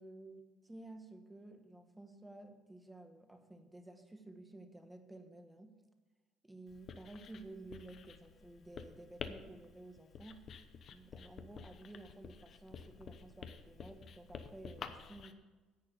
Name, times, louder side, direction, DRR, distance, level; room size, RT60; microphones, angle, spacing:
voice 1, 0.0-5.7 6.4-10.4 10.9-15.4, right 2 dB, 10° right, 5 dB, 1.4 m, -53 dB
Writing, 6.7-15.3, left 6 dB, 45° left, 0.9 m, -50 dB
10.5 x 8.5 x 6.8 m, 1.3 s
cardioid pair, 120°, 0 cm